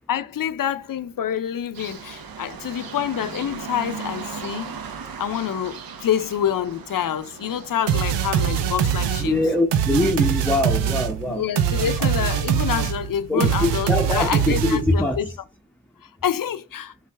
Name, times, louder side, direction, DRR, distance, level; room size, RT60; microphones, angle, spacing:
voice 1, 0.1-4.7 5.2-9.4 11.3-15.3 16.0-16.9, left 9 dB, 55° left, 0.7 m, -27 dB
sound 1, 1.7-9.6, right 6 dB, 55° right, 0.9 m, -38 dB
sound 2, 7.9-15.1, right 8 dB, 85° right, 0.6 m, -23 dB
voice 2, 9.2-11.4 12.0-12.1 13.3-15.3, left 1 dB, 5° left, 0.8 m, -23 dB
5.5 x 2.3 x 3.4 m
supercardioid pair, 45°, 41 cm